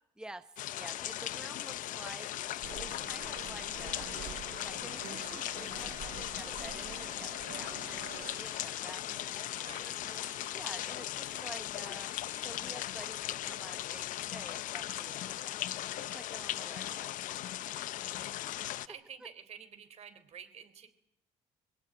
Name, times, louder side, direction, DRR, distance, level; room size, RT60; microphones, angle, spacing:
voice 1, 0.2-4.2 4.5-9.7 10.0-15.6 15.9-17.1, right 1 dB, 5° right, 10 dB, 0.9 m, -50 dB
sound 1, 0.6-18.9, left 13 dB, 75° left, 0.8 m, -38 dB
sound 2, 2.3-5.4 5.7-12.5, right 3 dB, 20° right, 4.7 m, -57 dB
sound 3, 2.6-8.3, right 12 dB, 80° right, 1.1 m, -47 dB
voice 2, 9.6-9.9 18.2-18.3 18.6-20.9, right 8 dB, 50° right, 10 dB, 3.6 m, -50 dB
22.0 x 18.0 x 9.0 m, 0.79 s
cardioid pair, 120°, 14 cm